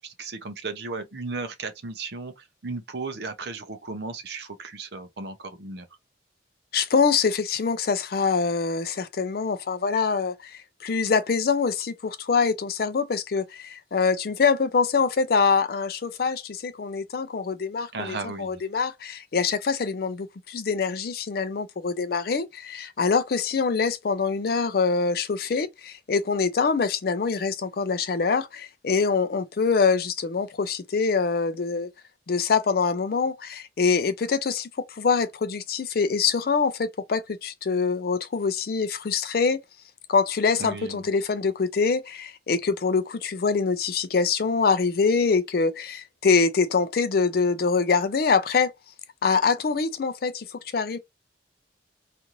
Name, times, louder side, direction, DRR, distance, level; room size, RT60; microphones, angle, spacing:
voice 1, 0.0-5.9 17.9-18.6 40.6-41.1, right 3 dB, 60° right, 0.6 m, -35 dB
voice 2, 6.7-31.9 32.3-39.6 40.1-48.7 49.2-51.0, left 5 dB, 50° left, 0.4 m, -24 dB
2.6 x 2.5 x 2.9 m
head